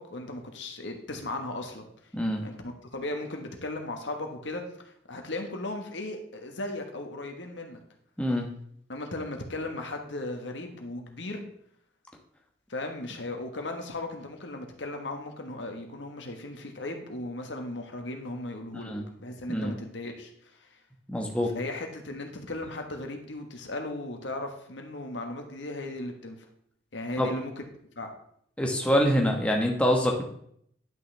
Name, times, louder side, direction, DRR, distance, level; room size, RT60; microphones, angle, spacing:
voice 1, 0.0-1.9 2.4-7.8 8.9-11.4 12.7-18.9 19.2-20.8 21.5-26.4 26.9-27.5 27.9-28.1, left 2 dB, 70° left, 4 dB, 1.4 m, -36 dB
voice 2, 2.1-2.4 8.2-8.5 18.7-19.1 19.5-19.7 21.1-21.5 27.2-27.3 28.6-30.2, equal, 5° left, 0 dB, 1.1 m, -25 dB
10.5 x 6.3 x 3.4 m, 0.68 s
head